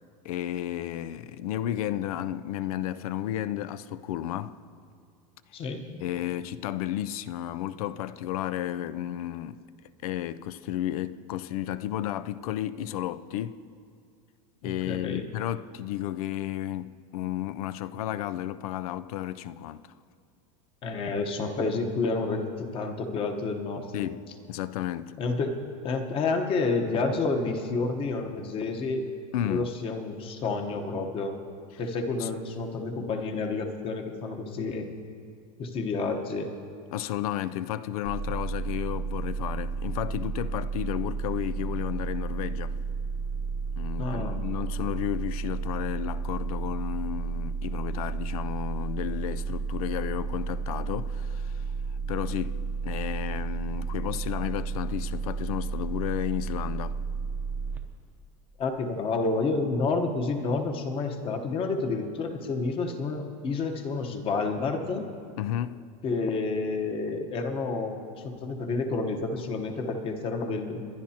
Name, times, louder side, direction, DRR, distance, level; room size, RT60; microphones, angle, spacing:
voice 1, 0.2-4.6 6.0-9.6 10.0-13.6 14.6-19.9 23.9-24.2 24.5-25.2 29.3-29.7 31.7-31.8 32.2-32.3 36.9-42.8 43.8-51.6 52.1-57.0 65.4-65.9, left 12 dB, 90° left, 0.5 m, -32 dB
voice 2, 5.5-6.0 14.9-15.3 20.8-24.0 25.2-25.6 25.8-29.0 29.4-31.4 31.8-34.9 35.6-36.5 44.0-44.4 58.6-65.1 66.0-70.8, left 3 dB, 30° left, 1.1 m, -29 dB
sound 1, 38.0-57.8, right 5 dB, 10° right, 0.7 m, -32 dB
23.0 x 10.5 x 2.8 m
supercardioid pair, 155°, 18 cm